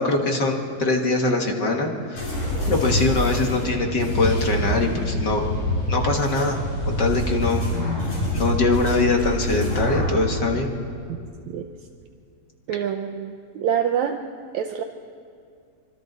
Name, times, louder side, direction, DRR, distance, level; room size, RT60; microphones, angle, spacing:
voice 1, 0.0-2.3 2.7-5.4 5.9-7.6 8.3-10.7, left 2 dB, 45° left, 2 dB, 1.7 m, -23 dB
sound 1, 2.2-10.2, left 1 dB, 90° left, 9.3 m, -26 dB
voice 2, 12.7-14.2 14.5-14.8, right 8 dB, 75° right, 5 dB, 2.0 m, -26 dB
26.0 x 25.0 x 4.0 m, 2.3 s
omnidirectional pair, 3.5 m